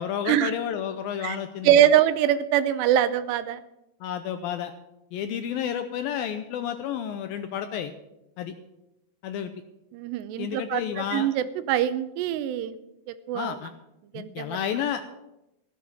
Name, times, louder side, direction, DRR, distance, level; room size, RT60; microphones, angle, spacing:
voice 1, 0.0-1.8 4.0-4.7 5.1-7.9 8.4-8.5 9.2-9.5 10.4-11.3 13.3-13.7 14.1-15.1, left 9 dB, 80° left, 8 dB, 2.2 m, -31 dB
voice 2, 1.6-3.6 9.9-10.8 11.1-12.8 13.3-13.6 14.1-14.6, right 10 dB, 85° right, 12 dB, 2.9 m, -23 dB
16.0 x 8.3 x 7.1 m, 0.89 s
omnidirectional pair, 4.8 m